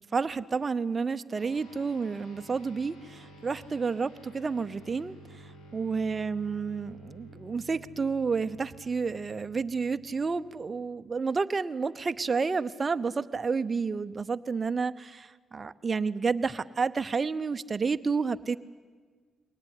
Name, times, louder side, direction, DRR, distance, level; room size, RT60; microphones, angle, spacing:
voice 1, 0.1-18.6, right 5 dB, 30° right, 12 dB, 0.8 m, -30 dB
sound 1, 1.4-11.1, right 1 dB, 80° left, 4.0 m, -52 dB
22.5 x 18.5 x 10.0 m, 1.5 s
cardioid pair, 90°, 0 cm